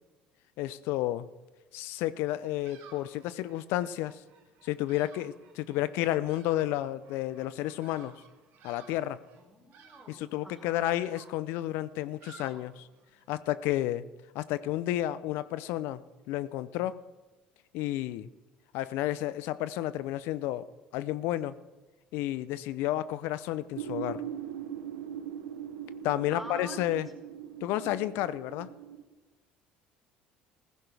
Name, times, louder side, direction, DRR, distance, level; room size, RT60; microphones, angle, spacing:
voice 1, 0.6-1.3 1.7-4.2 4.6-8.1 8.6-9.2 10.1-12.9 13.3-14.1 14.3-16.0 16.3-17.0 17.7-18.3 18.7-20.7 20.9-21.6 22.1-24.2 26.0-27.1 27.6-28.7, left 14 dB, 70° left, 16 dB, 0.6 m, -31 dB
Bird vocalization bird call bird song, 2.3-13.3, right 6 dB, 65° right, 2.2 m, -57 dB
voice 2, 9.4-10.9 26.3-26.8, equal, 5° left, -2 dB, 4.9 m, -46 dB
sound 1, 23.7-29.0, right 9 dB, 85° right, 1.0 m, -40 dB
15.5 x 15.0 x 3.4 m, 1.2 s
hypercardioid pair, 70°, 4 cm